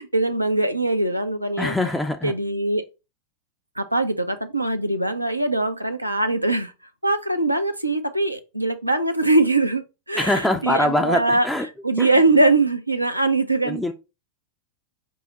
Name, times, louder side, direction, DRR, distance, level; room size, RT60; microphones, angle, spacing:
voice 1, 0.0-1.7 2.2-2.8 3.8-6.7 7.0-11.5 11.8-13.8, right 2 dB, 85° right, 0.5 m, -22 dB
voice 2, 1.6-2.3 10.1-11.7 12.0-12.1 13.6-13.9, left 1 dB, 5° left, 0.4 m, -23 dB
4.6 x 2.0 x 3.9 m
figure-of-eight pair, 90°, 0 cm